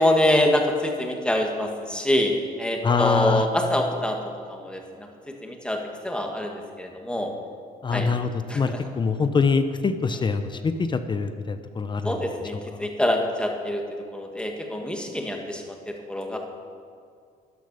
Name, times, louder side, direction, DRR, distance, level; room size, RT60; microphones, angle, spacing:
voice 1, 0.0-5.1 5.4-7.3 7.9-8.1 8.5-8.9 12.0-13.8 14.1-16.4, left 1 dB, 5° left, 2 dB, 1.8 m, -25 dB
voice 2, 2.8-3.5 7.8-12.2 12.7-12.9, left 5 dB, 30° left, 10 dB, 0.7 m, -24 dB
12.0 x 10.0 x 6.7 m, 2.2 s
cardioid pair, 110°, 17 cm